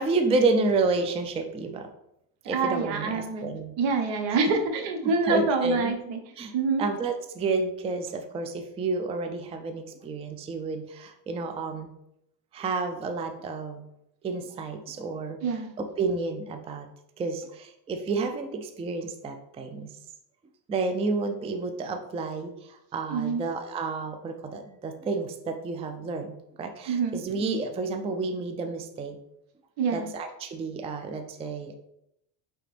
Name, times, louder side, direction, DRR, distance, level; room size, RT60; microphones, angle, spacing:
voice 1, 0.0-1.9 2.4-3.8 5.2-5.9 6.4-6.5 6.8-11.9 12.5-13.9 14.2-15.4 15.8-16.9 17.2-19.9 20.7-29.2 29.9-31.7, right 3 dB, 15° right, 6 dB, 0.3 m, -30 dB
voice 2, 2.4-3.5 3.8-6.2 6.5-6.9 15.4-15.7 23.1-23.5 26.9-27.2 29.8-30.1, right 4 dB, 75° right, 4 dB, 1.0 m, -26 dB
4.9 x 3.3 x 3.2 m, 0.80 s
cardioid pair, 105°, 44 cm